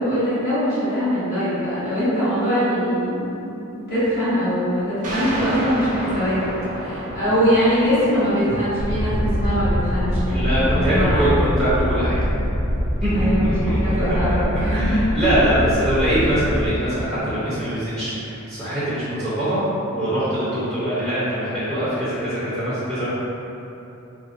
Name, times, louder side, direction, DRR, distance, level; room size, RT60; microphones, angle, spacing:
voice 1, 0.0-3.4 3.9-6.5 6.8-11.4 13.1-13.5 13.8-15.1, equal, 45° left, -14 dB, 1.2 m, -22 dB
sound 1, 5.0-14.2, equal, 35° right, 0.5 m, -34 dB
sound 2, 8.8-16.7, equal, 85° left, 0.9 m, -23 dB
voice 2, 10.3-12.2 13.0-14.1 14.7-19.6 19.9-23.1, right 1 dB, ahead, -12 dB, 0.6 m, -22 dB
3.6 x 2.1 x 2.5 m, 2.9 s
head